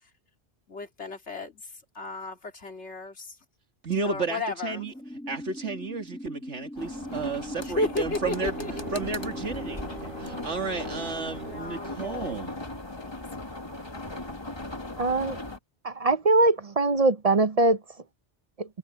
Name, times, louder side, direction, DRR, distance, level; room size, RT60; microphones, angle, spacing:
voice 1, 0.7-1.6 1.9-3.4 4.0-4.9 7.6-9.0 10.2-11.1 11.4-12.5 13.0-13.1, left 2 dB, 75° left, 2.7 m, -34 dB
voice 2, 3.8-4.9 5.3-8.6 8.9-12.5, right 4 dB, 90° right, 2.4 m, -32 dB
sound 1, 4.7-9.7, left 1 dB, 5° left, 2.9 m, -41 dB
sound 2, 6.8-15.6, left 2 dB, 25° left, 1.8 m, -38 dB
Bowed string instrument, 7.9-11.8, right 3 dB, 60° right, 2.8 m, -41 dB
voice 3, 15.0-15.4 15.8-17.8, right 2 dB, 40° right, 0.7 m, -22 dB
omnidirectional pair, 1.2 m